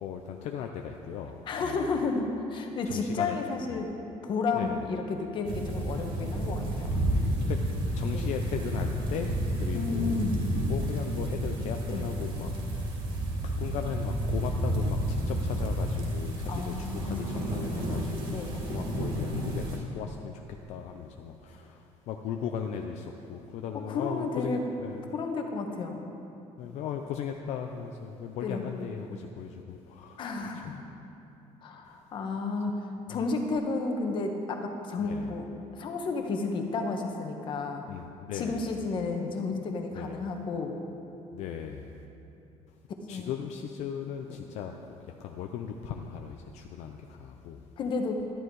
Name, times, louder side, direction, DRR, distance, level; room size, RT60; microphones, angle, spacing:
voice 1, 0.0-2.0 2.9-3.4 3.7-3.8 4.5-4.8 7.5-10.2 10.6-12.5 13.0-25.1 26.6-30.2 33.1-33.3 35.0-35.4 37.9-38.6 39.9-40.2 41.3-42.0 43.1-47.7, left 8 dB, 65° left, 4 dB, 0.6 m, -38 dB
voice 2, 1.5-3.9 4.2-6.9 8.1-8.3 9.7-10.4 11.9-12.0 16.5-17.3 18.3-18.6 23.9-24.6 25.1-26.0 28.4-28.6 30.2-30.8 31.6-32.8 33.1-35.5 35.7-37.9 38.3-40.8 43.1-43.3 44.3-44.4 47.8-48.3, left 3 dB, 40° left, 4 dB, 1.2 m, -32 dB
sound 1, 5.4-19.8, right 1 dB, 40° right, 2.5 m, -31 dB
12.0 x 10.5 x 4.8 m, 2.8 s
cardioid pair, 170°, 12 cm